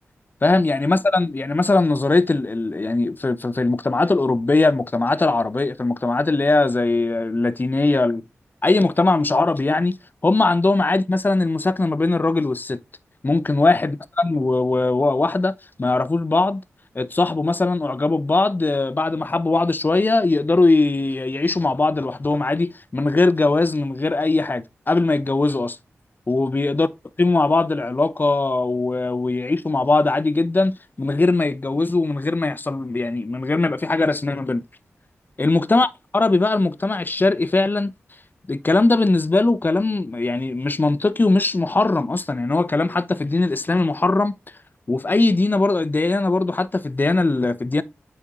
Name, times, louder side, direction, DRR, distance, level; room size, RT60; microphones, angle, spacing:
voice 1, 0.4-8.2 8.6-10.0 10.2-12.8 13.2-16.6 16.9-25.8 26.3-26.9 27.2-34.6 35.4-37.9 38.5-44.3 44.9-47.8, left 3 dB, 40° left, 0.8 m, -20 dB
8.5 x 4.4 x 3.6 m
cardioid pair, 45°, 5 cm